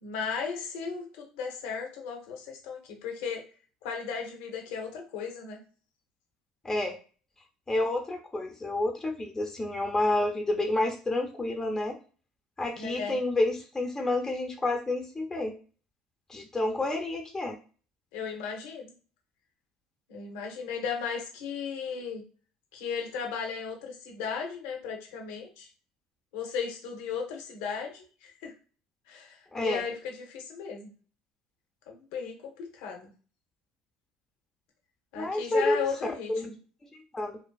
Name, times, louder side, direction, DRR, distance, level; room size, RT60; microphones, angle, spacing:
voice 1, 0.0-3.5 3.8-5.6 12.8-13.2 18.1-18.9 20.1-22.2 22.7-25.7 26.3-28.5 29.1-30.9 31.9-33.1 35.1-36.6, left 6 dB, 80° left, 2 dB, 0.7 m, -36 dB
voice 2, 6.6-7.0 7.7-12.0 12.6-15.5 16.3-17.6 29.5-29.8 35.1-35.9 36.3-36.5 37.1-37.4, left 2 dB, 20° left, 3 dB, 0.6 m, -29 dB
2.4 x 2.4 x 2.3 m, 0.38 s
supercardioid pair, 75°, 3 cm